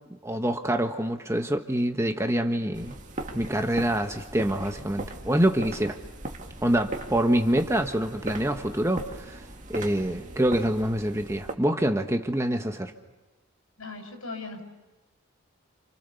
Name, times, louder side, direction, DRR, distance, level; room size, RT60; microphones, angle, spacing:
voice 1, 0.2-3.0 3.3-6.0 6.6-9.4 9.7-12.9, right 1 dB, 15° right, 5 dB, 1.3 m, -26 dB
sound 1, 2.7-11.5, right 2 dB, 35° right, 2.0 m, -39 dB
voice 2, 13.8-14.7, left 3 dB, 90° left, 4 dB, 6.6 m, -38 dB
29.5 x 28.5 x 7.0 m, 1.1 s
head